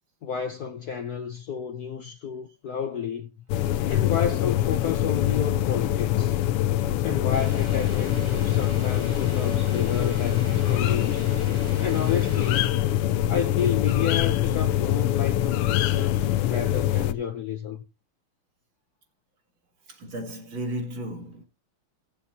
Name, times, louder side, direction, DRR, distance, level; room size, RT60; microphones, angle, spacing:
voice 1, 0.2-3.3 3.9-6.4 7.0-11.3 11.8-12.7 13.3-17.8, left 7 dB, 65° left, 1.0 m, -31 dB
sound 1, 3.5-17.1, left 13 dB, 90° left, 1.6 m, -24 dB
sound 2, 7.3-12.7, right 2 dB, 25° right, 0.6 m, -41 dB
voice 2, 19.8-21.4, equal, 60° right, 2.8 m, -34 dB
17.0 x 7.0 x 2.8 m
omnidirectional pair, 2.4 m